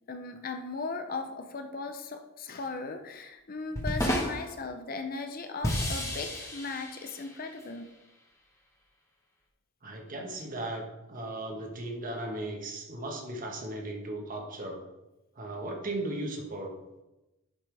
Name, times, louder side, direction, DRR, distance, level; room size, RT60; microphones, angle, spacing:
voice 1, 0.1-7.9, left 4 dB, 40° left, 6 dB, 0.7 m, -37 dB
sound 1, 3.8-4.6 5.6-7.6, equal, 15° left, 1.4 m, -32 dB
voice 2, 9.8-14.8 15.3-16.7, right 1 dB, 40° right, 2 dB, 1.4 m, -36 dB
11.0 x 5.7 x 3.5 m, 0.98 s
head